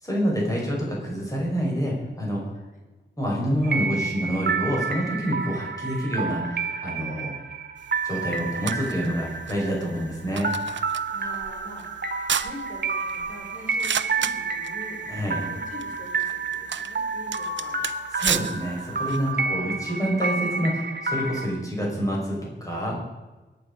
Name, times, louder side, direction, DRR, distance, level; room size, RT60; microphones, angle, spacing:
voice 1, 0.0-2.5 3.2-7.3 8.0-10.5 15.1-15.4 18.1-22.9, equal, 20° left, -3 dB, 5.6 m, -27 dB
sound 1, 3.6-21.5, right 4 dB, 60° right, 1.7 m, -30 dB
sound 2, 7.8-19.3, right 8 dB, 85° right, 0.7 m, -34 dB
voice 2, 11.0-11.9 12.4-15.0 15.5-17.9 19.2-19.9, left 1 dB, 45° left, -1 dB, 5.0 m, -43 dB
22.5 x 10.0 x 5.4 m, 1.2 s
wide cardioid pair, 125°, 19 cm